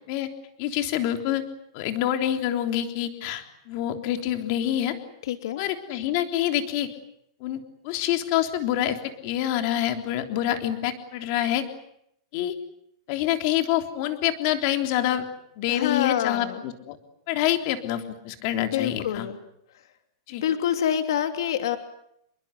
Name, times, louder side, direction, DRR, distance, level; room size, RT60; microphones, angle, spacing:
voice 1, 0.6-1.4 1.7-4.9 5.6-6.9 7.4-11.6 12.3-12.6 13.1-15.2 15.6-17.0 17.3-19.3 20.3-20.4, left 12 dB, 40° left, 7 dB, 3.4 m, -26 dB
voice 2, 5.2-5.6 15.7-16.6 18.6-19.4 20.4-21.8, left 10 dB, 65° left, 8 dB, 2.9 m, -26 dB
28.5 x 22.5 x 8.2 m, 0.74 s
supercardioid pair, 170°, 2 cm